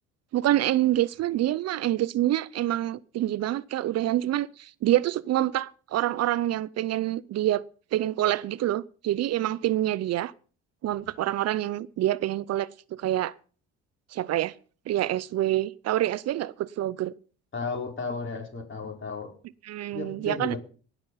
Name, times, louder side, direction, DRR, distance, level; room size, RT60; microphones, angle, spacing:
voice 1, 0.3-7.6 7.9-10.3 10.8-13.3 14.1-14.5 14.9-17.1 19.6-20.6, right 14 dB, 55° right, 0.6 m, -26 dB
voice 2, 17.5-19.3 19.9-20.6, left 4 dB, 40° left, 5.0 m, -34 dB
18.0 x 6.9 x 5.6 m
supercardioid pair, 75°, 31 cm